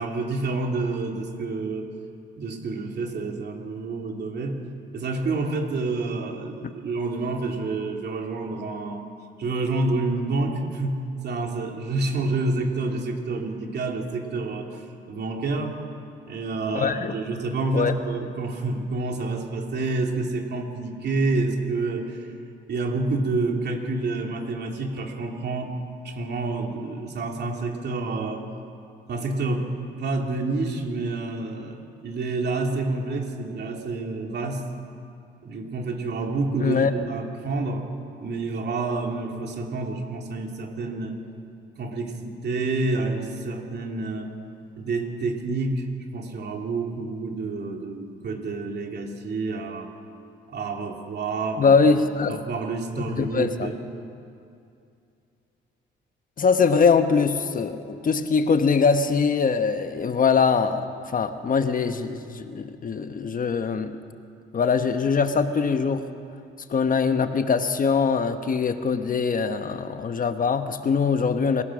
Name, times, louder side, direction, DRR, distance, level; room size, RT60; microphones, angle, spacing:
voice 1, 0.0-1.9 2.4-4.6 4.9-9.1 9.4-15.8 16.3-22.3 22.7-25.7 26.0-28.4 29.1-29.7 30.0-31.8 32.0-34.6 35.4-37.8 38.2-41.2 41.8-44.3 44.8-45.9 46.1-49.9 50.5-51.8 52.3-53.8, right 3 dB, 60° right, 2 dB, 3.0 m, -28 dB
voice 2, 16.7-17.1 17.7-17.9 36.6-36.9 51.6-52.4 53.2-53.7 56.4-60.9 61.1-64.0 64.5-66.1 66.7-71.6, left 5 dB, 45° left, 8 dB, 1.2 m, -22 dB
26.5 x 16.0 x 6.3 m, 2.5 s
cardioid pair, 90°, 20 cm